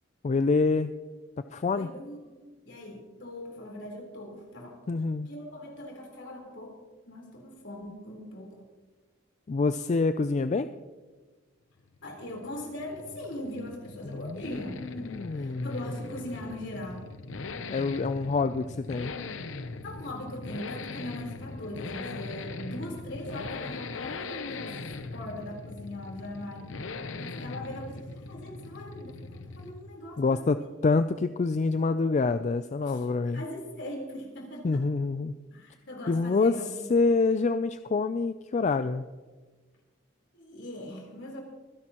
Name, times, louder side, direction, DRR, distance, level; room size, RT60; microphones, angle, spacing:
voice 1, 0.2-0.9 1.5-1.9 4.9-5.3 9.5-10.7 14.1-15.8 17.7-19.1 30.2-30.6 30.8-33.4 34.6-35.3 36.1-36.6 36.9-39.1, left 4 dB, 35° left, 11 dB, 0.4 m, -26 dB
voice 2, 1.7-2.4 2.6-4.8 5.3-8.6 12.0-17.1 19.8-24.8 25.1-26.7 27.2-30.6 32.8-33.1 33.3-34.8 35.5-36.9 40.3-41.4, left 1 dB, 65° left, 0 dB, 3.9 m, -41 dB
Accelerating revving vroom, 11.8-30.0 30.2-30.3, left 3 dB, 85° left, 0.8 m, -40 dB
24.5 x 10.5 x 3.0 m, 1.3 s
head